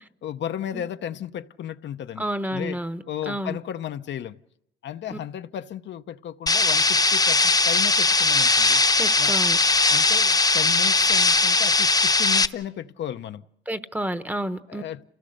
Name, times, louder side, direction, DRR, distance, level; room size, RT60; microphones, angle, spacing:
voice 1, 0.2-2.2 2.5-2.8 3.1-4.4 4.8-8.8 9.2-9.4 9.9-13.4 14.7-15.0, left 10 dB, 65° left, 0.7 m, -34 dB
voice 2, 2.2-3.6 5.1-5.2 9.0-9.6 13.7-14.8, right 1 dB, 10° right, 1.0 m, -30 dB
sound 1, 6.5-12.5, left 3 dB, 20° left, 0.9 m, -19 dB
28.5 x 17.5 x 6.6 m
cardioid pair, 90°, 20 cm